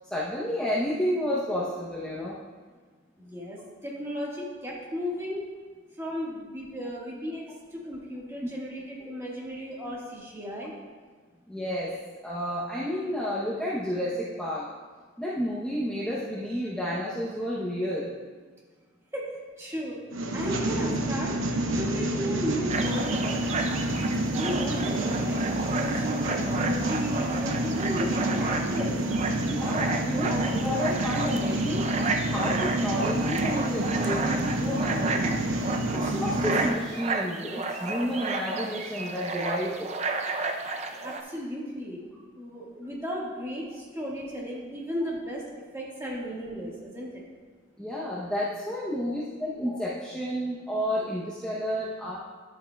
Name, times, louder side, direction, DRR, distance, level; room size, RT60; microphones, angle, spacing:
voice 1, 0.0-2.4 8.4-8.5 11.5-11.9 12.2-14.6 15.2-18.1 29.5-31.8 32.3-35.5 35.9-39.9 47.8-52.2, equal, 5° left, -7 dB, 0.7 m, -31 dB
voice 2, 3.2-5.4 6.0-7.4 7.7-10.7 19.1-19.3 19.6-20.0 20.3-21.3 21.8-23.4 24.3-25.4 25.7-29.0 41.0-42.0 42.4-47.2, equal, 15° right, -5 dB, 1.5 m, -35 dB
sound 1, 20.1-36.7, right 1 dB, 70° right, 0.8 m, -28 dB
sound 2, 22.7-41.2, right 3 dB, 30° right, 0.4 m, -32 dB
11.0 x 7.6 x 2.3 m, 1.5 s
head